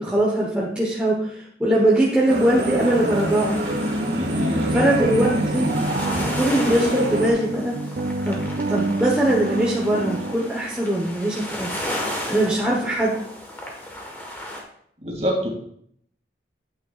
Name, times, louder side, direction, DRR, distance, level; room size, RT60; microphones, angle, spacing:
voice 1, 0.0-3.5 4.7-5.7 6.3-7.7 8.2-11.7 12.3-13.2, right 1 dB, 5° right, -4 dB, 1.1 m, -21 dB
sound 1, 1.9-14.6, left 1 dB, 10° left, 1.4 m, -35 dB
sound 2, 2.3-7.3, equal, 75° right, 1.8 m, -26 dB
sound 3, 2.5-10.3, right 2 dB, 55° right, 0.5 m, -29 dB
voice 2, 4.1-4.8 15.0-15.5, equal, 35° right, -2 dB, 2.3 m, -26 dB
9.7 x 8.6 x 2.4 m, 0.65 s
head